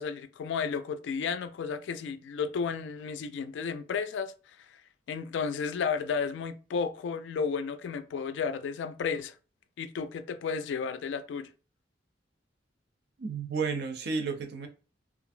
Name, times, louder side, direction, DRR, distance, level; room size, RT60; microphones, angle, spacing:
voice 1, 0.0-4.3 5.1-9.3 9.8-11.5, left 5 dB, 75° left, 0.3 m, -33 dB
voice 2, 13.2-14.7, right 5 dB, 60° right, 0.5 m, -32 dB
2.7 x 2.5 x 2.5 m
head